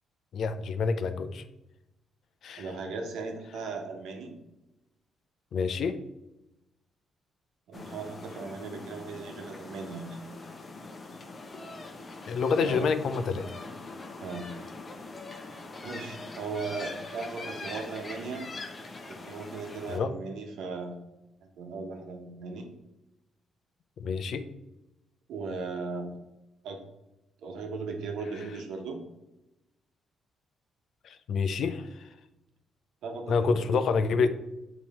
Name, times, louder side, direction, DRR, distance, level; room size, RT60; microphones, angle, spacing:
voice 1, 0.3-1.4 2.4-2.7 5.5-6.0 12.3-13.5 19.9-20.1 24.0-24.4 31.0-32.1 33.3-34.3, left 5 dB, 65° left, 10 dB, 0.5 m, -28 dB
voice 2, 2.6-4.4 7.7-10.2 12.5-12.9 14.2-14.4 15.8-18.5 19.1-21.0 21.4-22.7 25.3-26.2 26.6-26.8 27.4-29.0 33.0-33.9, right 4 dB, 80° right, 3 dB, 1.0 m, -37 dB
sound 1, 7.7-20.0, left 3 dB, 30° left, 0.8 m, -43 dB
7.3 x 3.0 x 4.3 m, 0.94 s
cardioid pair, 90°, 0 cm